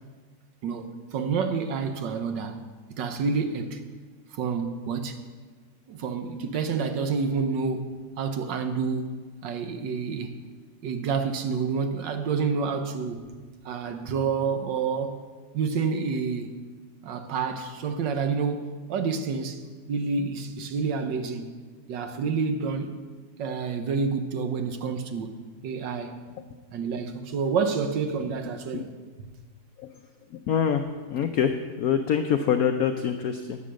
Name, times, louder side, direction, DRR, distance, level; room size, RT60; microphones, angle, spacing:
voice 1, 0.6-2.6 2.9-3.8 4.3-5.2 5.9-9.2 9.4-10.4 10.8-13.4 13.6-15.2 15.5-16.6 17.0-19.6 19.9-21.5 21.9-23.0 23.4-25.3 25.6-26.2 26.7-28.9, right 5 dB, 70° right, 1.4 m, -28 dB
voice 2, 30.5-30.8 31.1-33.6, left 8 dB, 85° left, 0.8 m, -25 dB
11.0 x 8.6 x 6.4 m
omnidirectional pair, 2.2 m